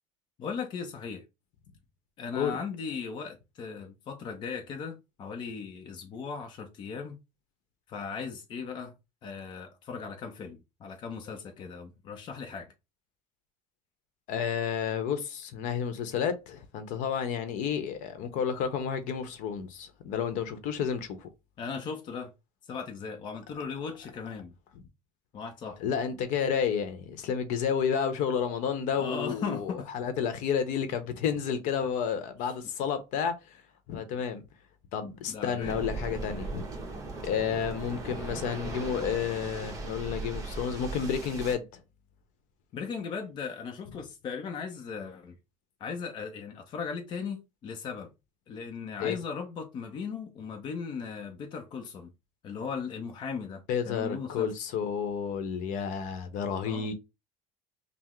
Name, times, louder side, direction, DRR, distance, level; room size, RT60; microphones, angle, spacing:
voice 1, 0.4-1.2 2.2-7.2 7.9-8.9 9.2-12.7 21.6-22.3 22.7-24.5 25.3-25.8 28.9-29.9 33.9-34.2 35.3-35.8 42.7-45.4 45.8-48.1 48.5-52.1 52.4-54.5 56.6-56.9, left 5 dB, 30° left, 0.6 m, -38 dB
voice 2, 14.3-21.3 24.7-24.8 25.8-33.6 33.9-34.4 34.9-36.7 37.2-41.6 49.0-49.2 53.7-56.9, left 7 dB, 60° left, 0.8 m, -31 dB
Waves surf, 35.6-41.5, right 3 dB, 25° right, 0.9 m, -38 dB
5.7 x 2.0 x 3.1 m
cardioid pair, 160°, 15 cm